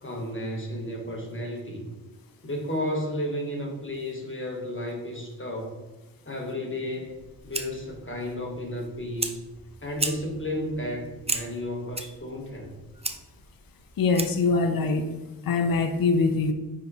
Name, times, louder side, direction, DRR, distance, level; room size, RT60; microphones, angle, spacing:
voice 1, 0.0-1.9 2.4-5.8 6.3-7.2 7.4-9.4 9.8-12.8, left 1 dB, 35° left, 0 dB, 1.3 m, -33 dB
Fire, 7.1-14.6, right 2 dB, 15° right, 0.7 m, -36 dB
voice 2, 14.0-15.1 15.5-16.5, left 4 dB, 70° left, 7 dB, 0.6 m, -23 dB
9.3 x 3.7 x 3.0 m, 1.1 s
cardioid pair, 55°, 36 cm